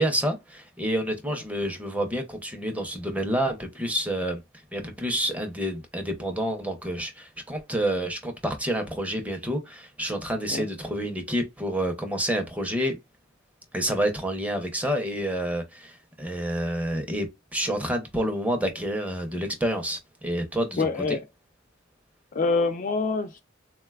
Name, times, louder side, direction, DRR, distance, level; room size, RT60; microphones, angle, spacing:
voice 1, 0.0-4.4 4.7-12.9 13.7-21.2, equal, 5° right, 0.6 m, -28 dB
voice 2, 20.8-21.2 22.3-23.4, left 3 dB, 40° left, 0.3 m, -25 dB
3.8 x 2.2 x 2.3 m
head